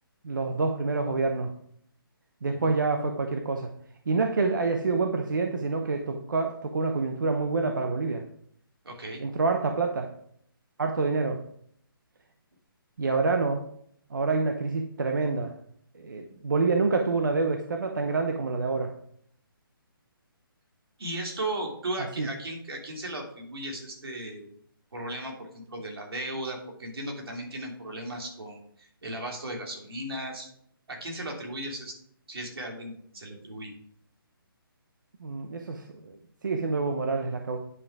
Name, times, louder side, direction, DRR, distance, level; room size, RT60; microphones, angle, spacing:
voice 1, 0.2-1.5 2.4-3.7 4.1-8.2 9.2-10.1 10.8-11.4 13.0-13.6 14.1-15.6 15.9-19.0 22.0-22.3 35.2-36.2 36.4-37.6, right 3 dB, 55° right, 5 dB, 0.9 m, -27 dB
voice 2, 8.8-9.2 21.0-24.5 24.9-30.5 30.9-32.0 32.3-33.7, right 1 dB, 85° right, 1 dB, 3.1 m, -36 dB
9.6 x 5.6 x 4.8 m, 0.66 s
hypercardioid pair, 180°, 12 cm